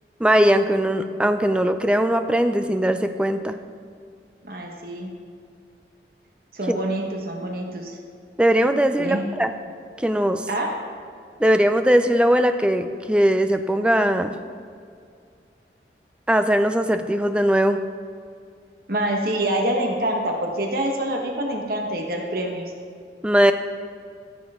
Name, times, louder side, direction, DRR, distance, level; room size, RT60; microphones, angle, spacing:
voice 1, 0.2-3.6 6.7-6.8 8.4-9.5 10.0-10.4 11.4-14.3 16.3-17.8 23.2-23.5, equal, 5° right, 8 dB, 0.4 m, -20 dB
voice 2, 4.4-5.1 6.5-8.0 9.0-9.2 10.5-10.8 18.9-22.7, right 1 dB, 55° right, 1 dB, 1.2 m, -26 dB
14.0 x 7.2 x 3.7 m, 2.3 s
head